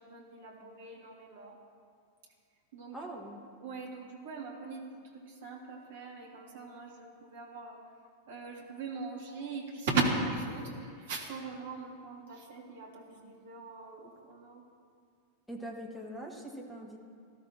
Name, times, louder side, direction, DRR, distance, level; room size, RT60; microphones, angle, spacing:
voice 1, 0.0-1.6 2.7-3.0 3.6-4.9 5.2-7.8 8.3-14.6, right 3 dB, 60° right, -1 dB, 2.6 m, -38 dB
voice 2, 2.9-3.4 15.5-17.0, right 1 dB, 5° left, 0 dB, 1.9 m, -42 dB
18.5 x 13.0 x 3.0 m, 2.2 s
figure-of-eight pair, 90°, 0 cm